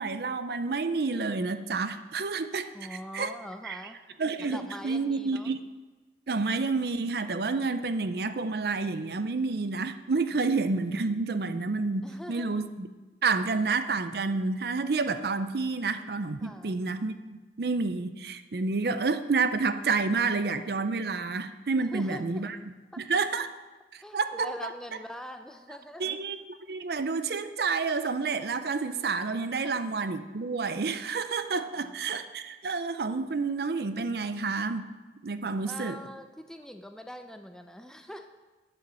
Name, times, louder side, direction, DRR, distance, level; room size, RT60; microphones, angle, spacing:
voice 1, 0.0-2.7 3.1-3.3 3.6-3.8 4.2-5.6 6.3-12.9 13.2-17.2 17.6-22.6 23.0-23.5 23.9-24.7 26.0-34.9 35.2-36.0, right 4 dB, 60° right, 11 dB, 0.5 m, -29 dB
voice 2, 2.7-4.0 4.4-5.5 12.0-12.6 16.4-16.8 21.7-22.5 22.9-23.0 24.0-26.2 29.5-29.8 31.6-32.1 35.6-38.3, left 1 dB, 5° left, 6 dB, 0.5 m, -43 dB
8.6 x 7.8 x 6.1 m, 1.2 s
head